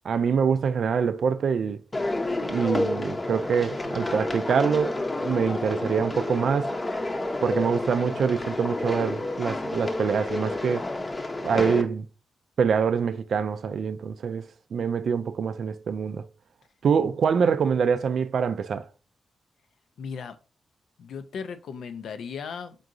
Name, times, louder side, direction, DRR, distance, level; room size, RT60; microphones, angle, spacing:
voice 1, 0.0-1.8 2.4-6.7 7.4-10.9 11.4-12.1 12.6-16.3 16.8-18.9, right 6 dB, 70° right, 0.3 m, -25 dB
sound 1, 1.9-11.8, left 2 dB, 30° left, 0.6 m, -30 dB
voice 2, 20.0-20.4 21.0-22.8, left 6 dB, 75° left, 0.4 m, -36 dB
3.8 x 3.6 x 2.5 m
supercardioid pair, 45°, 0 cm